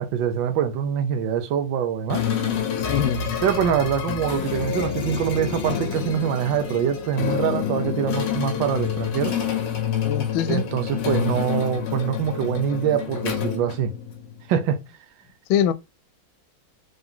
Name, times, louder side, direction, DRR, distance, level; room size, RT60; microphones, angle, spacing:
voice 1, 0.0-2.3 3.4-9.4 10.5-13.9 14.5-14.8, right 8 dB, 80° right, 1.4 m, -24 dB
sound 1, 2.1-14.4, left 8 dB, 70° left, 1.5 m, -28 dB
voice 2, 2.9-3.3 10.0-10.6 15.5-15.7, left 9 dB, 90° left, 1.4 m, -22 dB
3.9 x 3.4 x 3.7 m
omnidirectional pair, 2.1 m